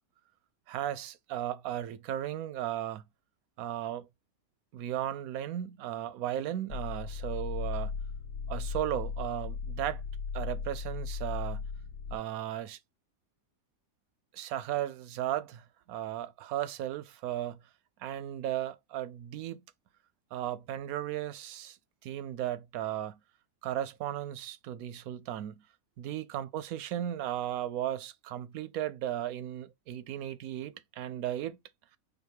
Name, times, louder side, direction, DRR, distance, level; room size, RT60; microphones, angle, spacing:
voice 1, 0.7-3.0 3.6-4.1 4.7-7.9 8.5-10.0 10.3-11.6 12.1-12.8 14.3-17.6 18.0-19.6 20.3-21.8 22.0-23.2 23.6-25.6 26.0-31.6, right 12 dB, 85° right, 1.0 m, -35 dB
sound 1, 6.7-12.2, left 5 dB, 70° left, 1.0 m, -37 dB
5.0 x 2.3 x 4.6 m
omnidirectional pair, 1.5 m